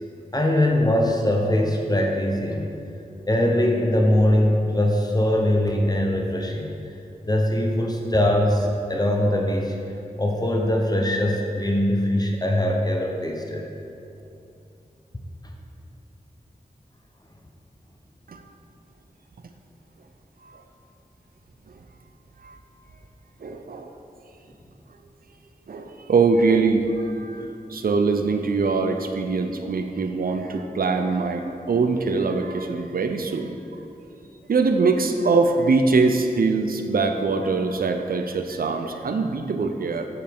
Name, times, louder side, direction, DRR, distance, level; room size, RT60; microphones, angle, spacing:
voice 1, 0.3-2.7 3.3-6.7 7.3-9.8 10.2-13.6, left 1 dB, 25° left, 1 dB, 0.7 m, -21 dB
voice 2, 23.4-23.9 25.7-33.5 34.5-40.1, right 4 dB, 70° right, 6 dB, 0.5 m, -23 dB
7.6 x 6.8 x 3.5 m, 2.7 s
wide cardioid pair, 55°, 16 cm